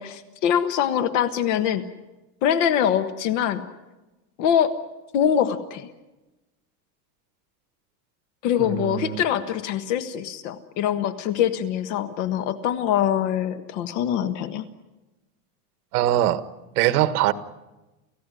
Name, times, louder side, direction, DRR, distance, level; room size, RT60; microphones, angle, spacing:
voice 1, 0.0-1.8 2.4-3.6 4.4-4.7 5.1-5.9 8.4-14.6, left 9 dB, 50° left, 11 dB, 1.4 m, -23 dB
voice 2, 8.6-9.2 15.9-16.4 16.7-17.3, right 14 dB, 75° right, 12 dB, 1.5 m, -22 dB
29.0 x 16.0 x 9.8 m, 1.1 s
cardioid pair, 180°, 45 cm